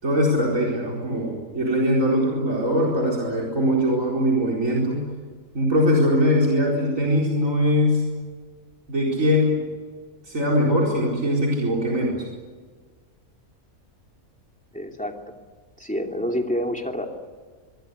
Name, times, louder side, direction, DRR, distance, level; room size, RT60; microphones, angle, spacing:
voice 1, 0.0-5.1 5.5-8.0 8.9-9.6 10.3-12.3, equal, 65° right, -3 dB, 4.9 m, -21 dB
voice 2, 14.7-15.4 15.8-17.1, equal, 5° left, 2 dB, 2.9 m, -28 dB
24.5 x 23.5 x 8.2 m, 1.5 s
omnidirectional pair, 1.5 m